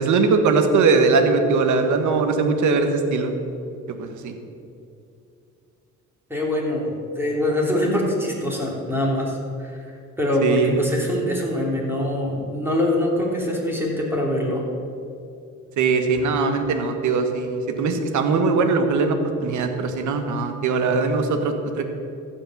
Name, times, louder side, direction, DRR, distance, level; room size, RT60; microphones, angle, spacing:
voice 1, 0.0-3.3 3.9-4.4 10.4-10.8 15.8-21.8, right 4 dB, 75° right, 6 dB, 1.4 m, -21 dB
voice 2, 6.3-9.7 10.2-14.6, left 1 dB, 5° right, -3 dB, 3.1 m, -24 dB
14.5 x 5.3 x 7.2 m, 2.6 s
cardioid pair, 90°, 30 cm